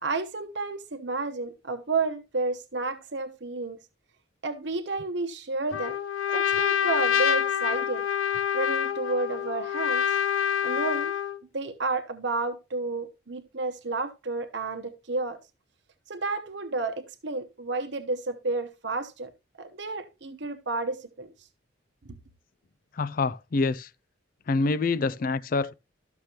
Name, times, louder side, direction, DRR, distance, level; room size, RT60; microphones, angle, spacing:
voice 1, 0.0-3.8 4.4-6.0 6.3-8.0 8.5-10.0 10.6-11.1 11.5-15.4 16.1-19.3 19.6-21.3, right 3 dB, 60° right, 0.9 m, -31 dB
Trumpet, 5.7-11.4, left 8 dB, 85° left, 0.8 m, -26 dB
voice 2, 22.9-23.9 24.5-25.7, left 3 dB, 45° left, 0.4 m, -26 dB
13.0 x 6.5 x 2.9 m
head